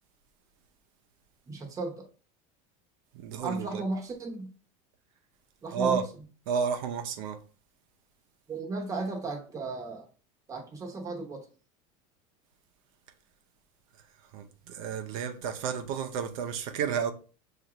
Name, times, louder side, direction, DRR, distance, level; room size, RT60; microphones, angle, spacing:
voice 1, 1.5-2.1 3.4-4.5 5.6-6.0 8.5-10.1 10.5-11.5, right 3 dB, 20° right, 0.9 m, -35 dB
voice 2, 3.1-3.8 5.7-6.0 6.5-7.4 14.3-17.1, right 7 dB, 80° right, 0.6 m, -31 dB
6.4 x 2.5 x 3.0 m
cardioid pair, 155°, 17 cm